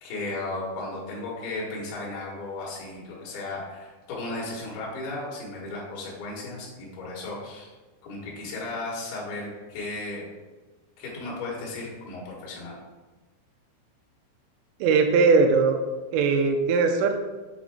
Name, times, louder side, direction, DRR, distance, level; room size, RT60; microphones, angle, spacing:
voice 1, 0.0-7.7 8.0-10.2 11.0-12.7, left 2 dB, 65° left, -5 dB, 2.8 m, -35 dB
voice 2, 14.8-15.8 16.1-17.2, right 4 dB, 90° right, 4 dB, 3.3 m, -20 dB
7.6 x 3.8 x 3.6 m, 1.2 s
omnidirectional pair, 5.8 m